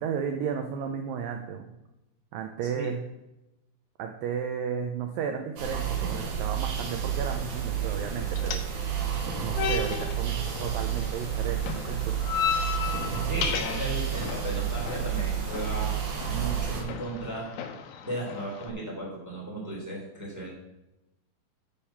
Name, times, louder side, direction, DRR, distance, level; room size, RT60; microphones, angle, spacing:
voice 1, 0.0-1.7 2.3-3.0 4.0-8.6 9.4-12.2, right 7 dB, 80° right, 5 dB, 2.0 m, -33 dB
sound 1, 5.6-16.8, right 8 dB, 60° right, 2.5 m, -30 dB
sound 2, 7.2-18.7, left 7 dB, 85° left, 1.8 m, -36 dB
voice 2, 13.2-15.9 16.2-17.5 18.0-20.5, right 1 dB, 5° right, -4 dB, 2.4 m, -35 dB
8.8 x 6.6 x 5.7 m, 0.93 s
omnidirectional pair, 4.8 m